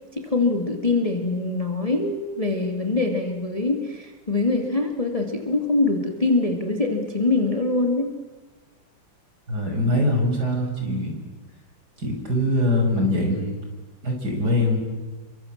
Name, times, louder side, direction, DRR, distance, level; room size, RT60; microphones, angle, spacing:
voice 1, 0.1-8.1, left 3 dB, 15° left, 4 dB, 2.5 m, -23 dB
voice 2, 9.5-11.1 12.0-13.6 14.0-14.8, left 1 dB, 50° right, 2 dB, 6.6 m, -23 dB
30.0 x 24.5 x 7.4 m, 1.3 s
omnidirectional pair, 2.2 m